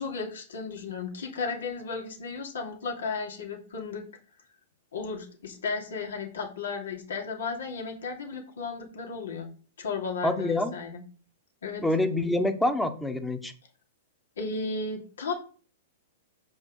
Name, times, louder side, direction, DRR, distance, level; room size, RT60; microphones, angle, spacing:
voice 1, 0.0-4.0 4.9-9.5 9.8-11.0 11.6-11.8 14.4-15.3, left 4 dB, 85° left, 1 dB, 2.7 m, -34 dB
voice 2, 10.2-10.7 11.8-13.5, left 1 dB, 5° left, 9 dB, 1.1 m, -26 dB
7.0 x 5.3 x 5.5 m, 0.40 s
hypercardioid pair, 130°, 0 cm